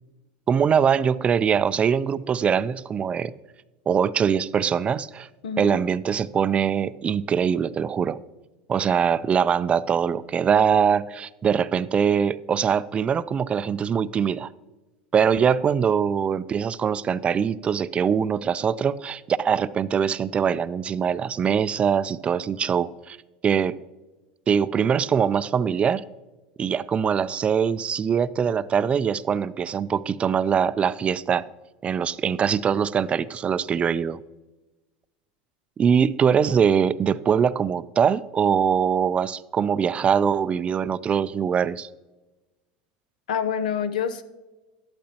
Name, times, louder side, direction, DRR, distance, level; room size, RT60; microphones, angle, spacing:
voice 1, 0.5-3.3 3.9-5.3 5.6-8.2 8.7-14.5 15.1-23.2 23.4-23.8 24.5-26.0 26.6-31.5 31.8-34.2 35.8-41.9, right 7 dB, 30° right, 0.4 m, -22 dB
voice 2, 5.4-5.8 43.3-44.2, left 7 dB, 90° left, 0.8 m, -27 dB
12.0 x 11.5 x 2.9 m
supercardioid pair, 110°, 4 cm